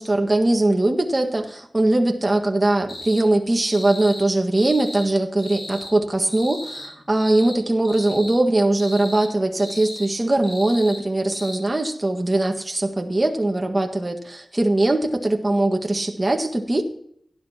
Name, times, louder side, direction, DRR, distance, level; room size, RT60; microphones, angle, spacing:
voice 1, 0.0-16.8, right 2 dB, 25° right, 3 dB, 1.6 m, -21 dB
sound 1, 2.9-3.2 3.7-4.3 4.5-5.1 5.4-5.9 6.3-6.9 7.2-7.6 7.8-8.4 8.8-9.3 9.6-10.1 10.4-11.0 11.3-11.6, left 1 dB, 60° left, 5.2 m, -36 dB
17.5 x 11.0 x 2.9 m, 0.67 s
wide cardioid pair, 95°, 0 cm